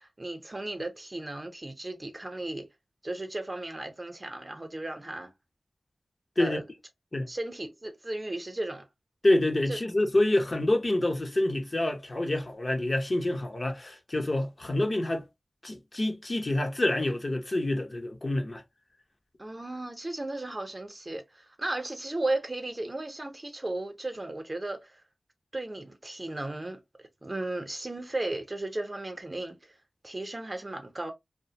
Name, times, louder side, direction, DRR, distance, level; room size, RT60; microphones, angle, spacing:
voice 1, 0.0-2.7 3.0-5.3 6.4-6.7 7.3-8.9 9.7-9.8 19.4-25.0 25.5-29.8 30.0-31.1, right 2 dB, 35° right, 0.7 m, -35 dB
voice 2, 9.2-15.2 15.6-18.6, left 1 dB, 45° left, 0.7 m, -27 dB
2.4 x 2.1 x 2.8 m
cardioid pair, 45°, 0 cm